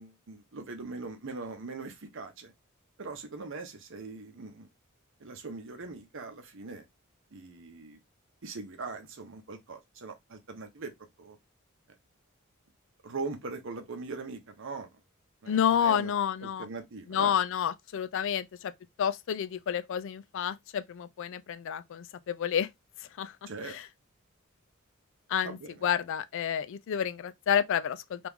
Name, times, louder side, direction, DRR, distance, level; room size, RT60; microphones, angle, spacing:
voice 1, 0.0-2.5 3.0-4.7 5.2-6.9 7.3-8.0 8.4-10.9 11.2-11.4 13.0-15.0 15.4-16.1 16.4-17.4 23.5-23.8 25.4-25.8, right 3 dB, 60° right, 0.8 m, -41 dB
voice 2, 15.5-16.7 17.1-18.7 19.0-22.7 23.2-23.8 25.3-28.3, left 8 dB, 60° left, 0.3 m, -30 dB
3.0 x 2.5 x 3.5 m
head